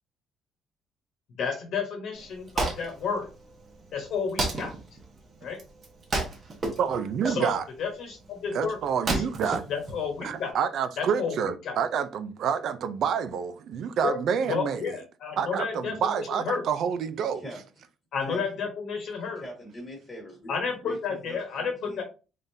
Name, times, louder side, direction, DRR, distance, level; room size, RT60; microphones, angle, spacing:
voice 1, 1.4-3.3 3.9-4.7 5.4-5.6 7.3-8.8 9.1-10.5 11.0-11.3 11.6-11.8 14.0-14.2 14.4-16.6 18.1-19.4 20.5-22.0, left 5 dB, 55° left, 1.2 m, -31 dB
Wood, 2.1-10.5, right 2 dB, 35° right, 1.1 m, -33 dB
voice 2, 6.8-7.6 8.5-9.6 10.2-14.9 15.4-17.4, right 7 dB, 55° right, 0.5 m, -28 dB
voice 3, 19.3-20.5 20.8-22.0, equal, 15° left, 1.5 m, -42 dB
3.7 x 3.6 x 2.7 m
cardioid pair, 150°, 0 cm